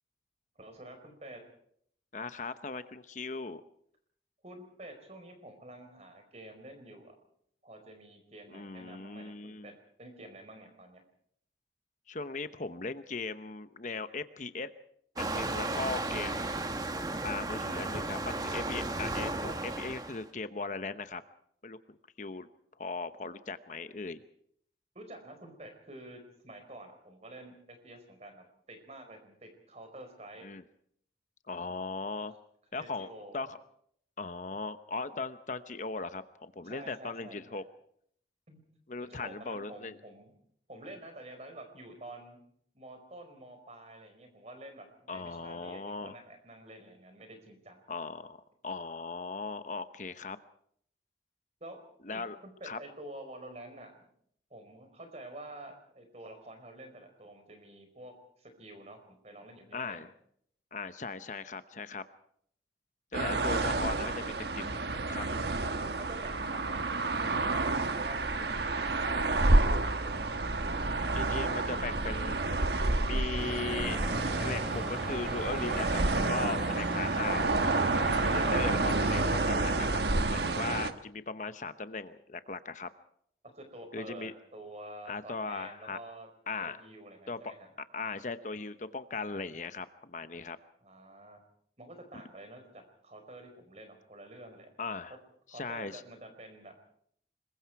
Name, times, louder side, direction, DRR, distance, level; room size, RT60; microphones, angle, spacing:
voice 1, 0.6-1.4 4.4-7.2 7.6-9.7 10.0-11.0 24.9-30.5 32.8-33.5 36.6-37.6 38.5-38.6 39.0-40.3 40.7-42.4 42.7-47.8 51.6-51.8 52.1-54.1 54.5-60.1 63.1-63.7 65.9-70.2 83.5-86.3 86.6-87.7 90.8-91.4 91.8-94.7 95.1-95.2 95.5-96.8, right 1 dB, 40° right, 6 dB, 4.5 m, -49 dB
voice 2, 2.1-3.6 8.5-9.7 12.1-14.7 15.2-16.6 17.2-21.2 21.6-21.8 22.2-22.5 22.8-24.2 30.4-30.6 31.5-32.3 32.7-33.1 33.3-33.6 34.2-37.6 38.9-40.0 45.1-46.2 47.9-48.4 48.6-50.4 52.0-52.4 52.6-52.8 59.7-60.1 60.7-62.0 63.1-64.8 65.1-65.2 71.1-72.4 73.0-74.0 74.4-77.5 78.0-80.0 80.3-82.9 83.9-84.3 85.1-86.0 86.5-86.8 87.3-87.5 87.9-90.6 94.8-95.2 95.5-96.0, left 4 dB, 45° left, 11 dB, 0.9 m, -38 dB
Waves surf, 15.2-20.2, right 2 dB, 20° right, 1.3 m, -34 dB
sound 1, 63.1-80.9, right 2 dB, 70° right, 1.3 m, -29 dB
sound 2, 73.4-79.5, equal, 5° right, 4.0 m, -40 dB
26.0 x 22.0 x 4.7 m, 0.67 s
head